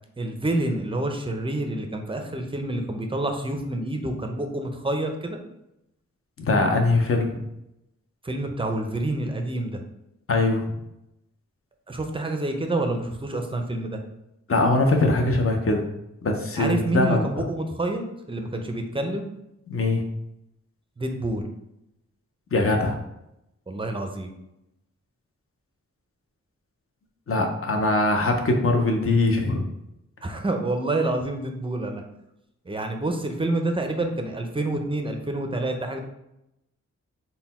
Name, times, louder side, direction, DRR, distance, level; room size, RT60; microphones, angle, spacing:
voice 1, 0.2-5.4 8.2-9.8 11.9-14.0 16.6-19.3 21.0-21.4 23.7-24.3 30.2-32.0 32.7-36.0, right 2 dB, 20° right, 4 dB, 0.5 m, -28 dB
voice 2, 6.4-7.3 10.3-10.6 14.5-15.8 16.2-17.2 19.7-20.0 22.5-23.0 27.3-29.7, left 2 dB, 50° left, 3 dB, 0.7 m, -22 dB
3.9 x 2.2 x 4.1 m, 0.86 s
wide cardioid pair, 100°, 29 cm